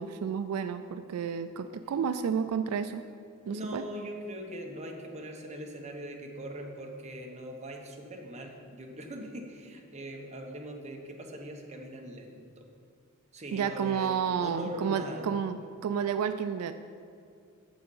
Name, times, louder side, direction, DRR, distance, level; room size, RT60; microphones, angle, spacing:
voice 1, 0.0-3.0 3.5-3.8 13.5-16.7, right 7 dB, 80° right, 10 dB, 0.3 m, -31 dB
voice 2, 3.4-12.7 13.3-15.3, equal, 30° right, 2 dB, 1.0 m, -41 dB
7.4 x 7.0 x 5.4 m, 2.3 s
head